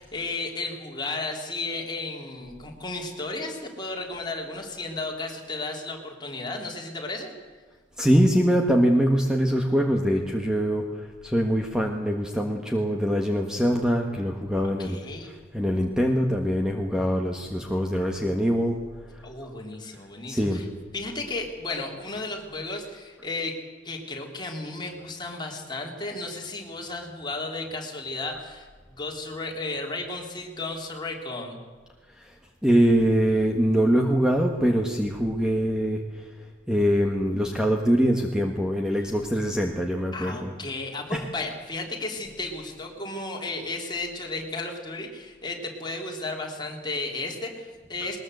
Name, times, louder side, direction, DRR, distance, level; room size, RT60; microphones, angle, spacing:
voice 1, 0.0-7.3 14.8-15.3 19.2-20.7 20.9-23.6 23.8-28.7 29.0-31.6 40.1-48.2, left 2 dB, 25° left, 0 dB, 3.7 m, -34 dB
voice 2, 8.0-15.0 15.3-18.8 20.3-20.6 32.6-36.0 36.7-40.5 41.1-41.3, equal, 5° right, 2 dB, 1.5 m, -23 dB
21.0 x 20.5 x 7.9 m, 1.5 s
head